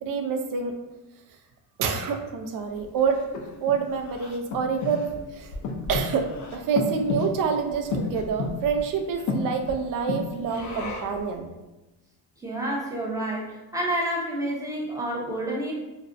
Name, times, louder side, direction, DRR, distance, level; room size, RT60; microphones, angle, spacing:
voice 1, 0.0-0.7 1.8-3.2 3.6-5.5 5.9-11.5, right 6 dB, 55° right, 4 dB, 0.5 m, -27 dB
Breathing, 2.8-11.3, left 3 dB, 45° left, 0.4 m, -33 dB
voice 2, 12.4-15.7, right 1 dB, 10° right, -3 dB, 0.6 m, -29 dB
2.5 x 2.0 x 2.5 m, 1.1 s
cardioid pair, 95°, 41 cm